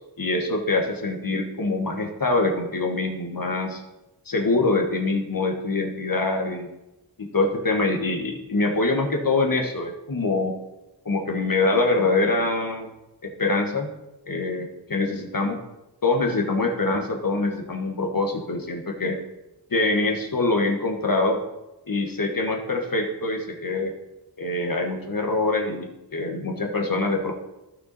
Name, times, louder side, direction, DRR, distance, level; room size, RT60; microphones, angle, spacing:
voice 1, 0.2-3.8 4.3-6.7 7.2-10.5 11.0-12.9 13.2-13.9 14.3-15.6 16.0-19.2 19.7-21.4 21.9-23.9 24.4-27.3, left 2 dB, 50° left, 3 dB, 1.3 m, -24 dB
12.0 x 5.9 x 4.1 m, 0.97 s
wide cardioid pair, 50°, 45 cm